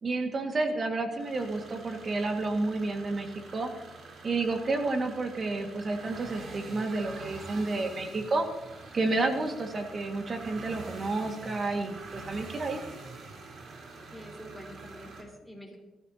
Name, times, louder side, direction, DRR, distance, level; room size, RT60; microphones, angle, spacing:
voice 1, 0.0-3.7 4.2-8.5 8.9-12.8, right 3 dB, 40° right, 4 dB, 1.9 m, -30 dB
sound 1, 1.1-15.2, right 3 dB, 60° right, 4.0 m, -46 dB
voice 2, 14.1-15.8, equal, 5° right, 1 dB, 4.2 m, -46 dB
21.5 x 14.0 x 2.9 m, 1.0 s
cardioid pair, 95°, 0 cm